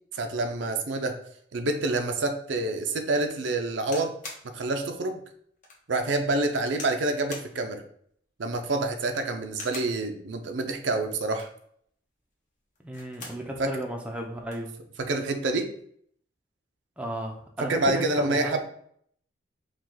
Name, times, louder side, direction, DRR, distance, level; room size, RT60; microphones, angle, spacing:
voice 1, 0.1-1.2 1.5-4.1 4.5-5.2 5.9-7.8 8.4-11.5 13.6-13.8 15.0-15.7 17.6-18.6, right 2 dB, 70° right, 5 dB, 0.5 m, -27 dB
sound 1, 3.9-4.5 5.0-5.1 5.6-5.8 6.7-7.0 7.3-7.5 8.6-8.9 9.5-10.0 11.2-11.6 12.7-13.4 13.9-14.0 14.2-14.7 15.5-15.8, left 3 dB, 40° left, 1.0 m, -42 dB
voice 2, 12.8-14.7 17.0-18.5, right 1 dB, 5° right, 0 dB, 0.5 m, -34 dB
4.8 x 2.3 x 3.8 m, 0.64 s
head